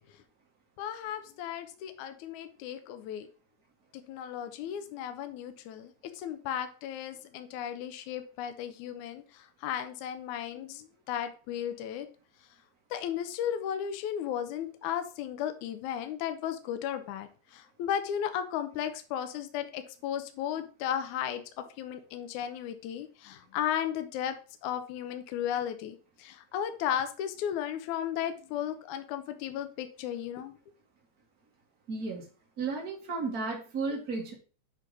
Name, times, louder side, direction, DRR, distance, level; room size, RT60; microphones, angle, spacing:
voice 1, 0.8-3.3 3.9-12.1 12.9-21.4 21.8-30.6, left 9 dB, 85° left, 8 dB, 1.7 m, -35 dB
voice 2, 31.9-32.2 32.6-34.3, right 4 dB, 55° right, 0 dB, 0.9 m, -33 dB
8.1 x 3.9 x 4.9 m, 0.37 s
omnidirectional pair, 4.5 m